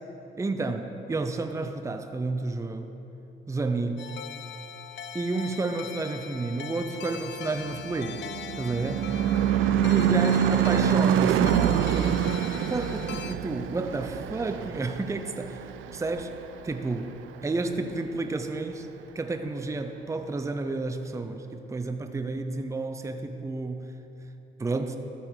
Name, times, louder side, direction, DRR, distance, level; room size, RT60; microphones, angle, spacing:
voice 1, 0.4-3.0 3.5-4.2 5.1-8.3 8.6-9.1 9.9-12.3 12.7-15.7 15.9-16.3 16.6-18.9 19.1-23.9 24.6-25.0, right 3 dB, 15° right, 7 dB, 0.6 m, -31 dB
sound 1, 4.0-13.4, left 8 dB, 65° left, 0.5 m, -41 dB
Car passing by / Truck / Engine, 7.8-16.5, right 10 dB, 80° right, 0.4 m, -26 dB
sound 2, 9.3-13.2 13.6-17.2, equal, 10° left, 1.2 m, -47 dB
13.0 x 6.9 x 4.9 m, 3.0 s
cardioid pair, 90°, 20 cm